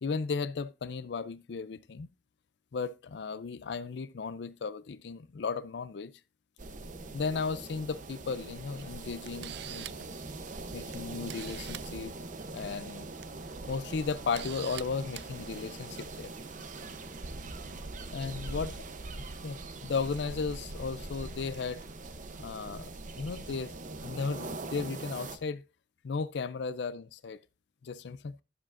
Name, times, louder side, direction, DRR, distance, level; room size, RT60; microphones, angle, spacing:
voice 1, 0.0-2.1 2.7-6.1 7.1-10.0 10.7-12.1 12.5-13.1 13.7-16.3 18.1-18.7 19.1-21.8 22.4-22.8 23.2-23.7 24.0-25.6 26.0-27.4 27.8-28.3, left 5 dB, 65° left, 0.4 m, -35 dB
sound 1, 6.6-25.4, right 2 dB, 45° right, 0.8 m, -42 dB
Camera, 8.8-8.9 9.3-10.1 10.9-11.0 11.3-11.9 13.0-13.2 13.7-13.8 14.3-14.8 15.1-15.3, right 13 dB, 65° right, 0.4 m, -43 dB
11.5 x 7.4 x 2.5 m
head